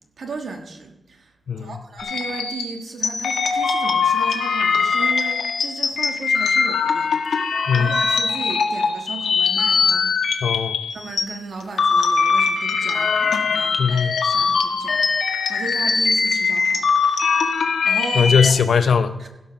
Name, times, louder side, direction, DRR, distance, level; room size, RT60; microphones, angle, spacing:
voice 1, 0.2-1.3 1.6-10.1 10.9-17.4 17.8-18.3 19.2-19.3, right 4 dB, 60° right, 1.4 m, -35 dB
sound 1, 2.0-11.2 11.6-18.5, left 5 dB, 90° left, 1.2 m, -21 dB
voice 2, 10.4-10.8 13.8-14.1 18.1-19.1, left 6 dB, 65° left, 0.7 m, -19 dB
16.0 x 5.7 x 5.9 m
wide cardioid pair, 160°, 0 cm